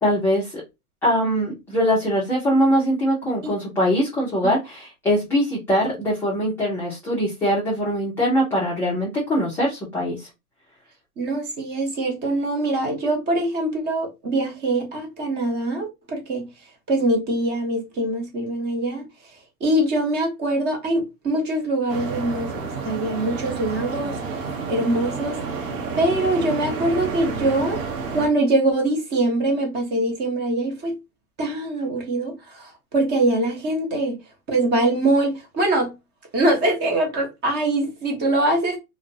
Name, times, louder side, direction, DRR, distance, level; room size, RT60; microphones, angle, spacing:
voice 1, 0.0-0.6 1.0-10.3, equal, 5° left, 0.4 m, -22 dB
voice 2, 11.2-16.5 16.9-19.0 19.6-24.2 24.7-25.4 26.0-27.8 28.1-31.0 31.4-34.2 34.5-35.9 36.3-38.8, right 2 dB, 25° right, 0.8 m, -23 dB
sound 1, 21.9-28.3, right 4 dB, 60° right, 0.8 m, -30 dB
2.7 x 2.2 x 2.5 m
hypercardioid pair, 115°, 45 cm